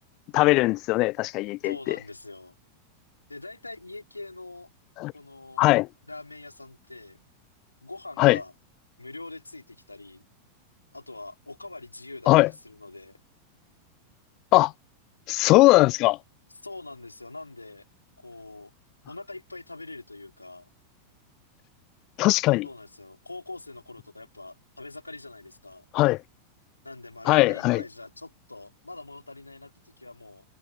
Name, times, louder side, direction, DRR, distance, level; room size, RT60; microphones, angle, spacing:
voice 1, 0.3-2.0 5.0-5.1 5.6-5.9 8.2-8.4 12.3-12.5 14.5-14.7 15.3-16.2 22.2-22.7 25.9-26.2 27.3-27.8, left 21 dB, 40° left, 0.4 m, -20 dB
voice 2, 1.6-2.5 3.3-4.7 5.1-5.7 6.1-7.2 7.8-8.5 9.0-10.3 10.9-13.2 16.6-17.8 18.2-18.7 19.1-20.7 22.6-25.8 26.8-30.4, left 2 dB, 85° left, 3.5 m, -43 dB
figure-of-eight pair, 90°, 0 cm